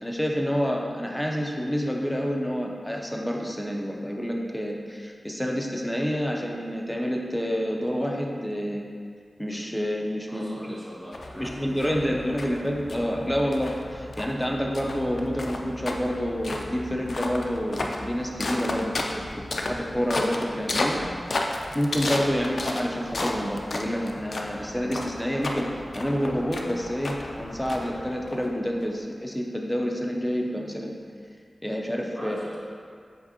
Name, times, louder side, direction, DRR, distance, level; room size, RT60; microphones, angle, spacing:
voice 1, 0.0-8.9 9.4-10.5 11.4-19.2 19.6-21.0 21.7-30.9 31.6-32.4, equal, 5° left, 0 dB, 0.5 m, -28 dB
voice 2, 10.3-12.2 12.5-12.6 32.1-32.6, equal, 15° right, -7 dB, 1.0 m, -40 dB
sound 1, 11.1-28.8, left 2 dB, 65° left, 0.3 m, -33 dB
4.9 x 3.5 x 2.7 m, 2.1 s
wide cardioid pair, 80°, 0 cm